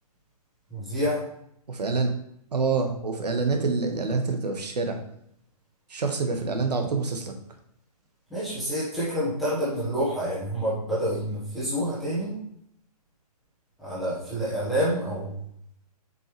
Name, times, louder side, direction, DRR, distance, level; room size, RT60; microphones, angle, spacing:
voice 1, 0.7-1.2 8.3-12.4 13.8-15.4, equal, ahead, -12 dB, 1.4 m, -28 dB
voice 2, 1.7-2.1 2.5-5.0 5.9-7.3, right 4 dB, 80° right, 4 dB, 1.5 m, -26 dB
7.4 x 5.5 x 3.3 m, 0.72 s
hypercardioid pair, 180°, 20 cm